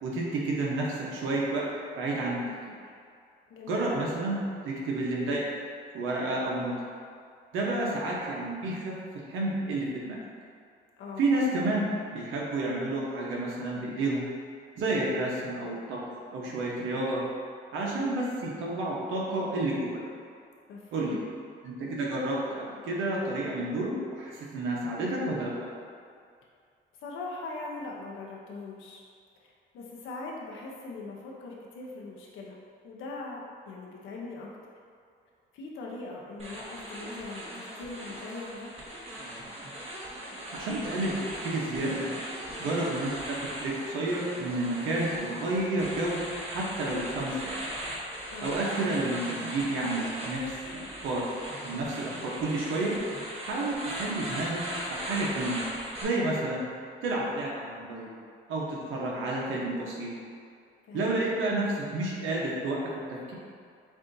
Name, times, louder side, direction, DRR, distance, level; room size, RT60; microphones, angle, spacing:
voice 1, 0.0-1.7 2.0-2.4 3.7-4.4 4.6-5.4 5.9-6.7 7.5-8.9 9.3-10.2 11.2-11.8 12.1-14.2 14.8-16.0 16.3-17.2 17.7-20.0 20.9-21.2 21.6-25.5 40.5-41.2 41.4-42.0 42.6-46.2 46.5-47.6 48.4-51.2 51.6-52.9 53.4-54.6 54.9-55.6 56.0-56.6 57.0-58.1 58.5-60.1 60.9-62.8 63.3-63.4, right 2 dB, 85° right, -4 dB, 1.1 m, -30 dB
voice 2, 3.5-3.9 11.0-11.3 20.7-21.2 27.0-29.0 29.4-32.6 32.8-34.5 35.5-38.7 48.3-48.6 60.9-61.2, left 3 dB, 80° left, -2 dB, 0.8 m, -41 dB
sound 1, 36.4-56.0, equal, 30° right, 1.2 m, -39 dB
7.2 x 2.7 x 2.7 m, 2.3 s
cardioid pair, 90°, 20 cm